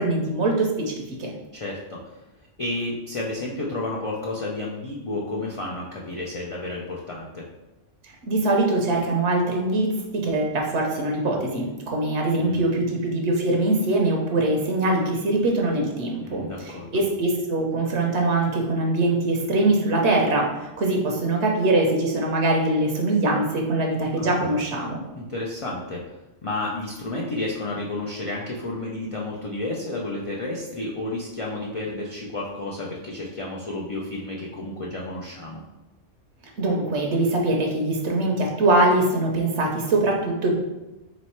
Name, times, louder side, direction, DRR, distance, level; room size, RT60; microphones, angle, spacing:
voice 1, 0.0-1.3 8.0-25.0 36.6-40.5, right 2 dB, 70° right, 0 dB, 0.9 m, -23 dB
voice 2, 1.5-2.2 2.6-7.4 12.4-12.7 16.2-17.0 24.2-24.5 25.2-26.0 26.4-35.6, left 2 dB, 60° left, -3 dB, 0.3 m, -31 dB
3.1 x 3.0 x 4.3 m, 1.0 s
omnidirectional pair, 1.2 m